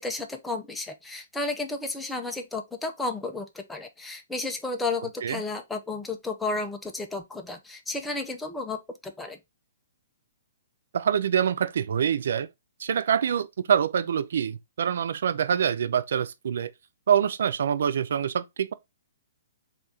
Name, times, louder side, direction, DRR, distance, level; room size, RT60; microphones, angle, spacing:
voice 1, 0.0-9.4, left 3 dB, 5° left, 0.5 m, -32 dB
voice 2, 10.9-12.5 12.8-16.7 17.1-18.7, right 8 dB, 65° right, 0.3 m, -25 dB
3.3 x 2.4 x 3.9 m
figure-of-eight pair, 125°, 0 cm